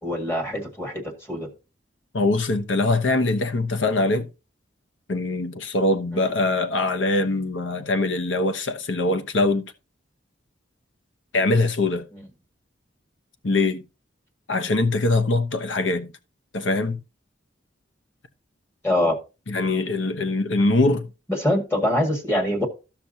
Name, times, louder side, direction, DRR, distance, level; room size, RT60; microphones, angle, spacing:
voice 1, 0.0-1.5 6.1-6.3 18.8-19.2 21.3-22.7, left 1 dB, 15° left, 1.8 m, -24 dB
voice 2, 2.1-4.3 5.1-9.7 11.3-12.1 13.4-13.8 14.5-16.1 16.5-17.0 19.5-21.1, left 2 dB, 85° left, 1.0 m, -22 dB
13.5 x 6.0 x 2.7 m
head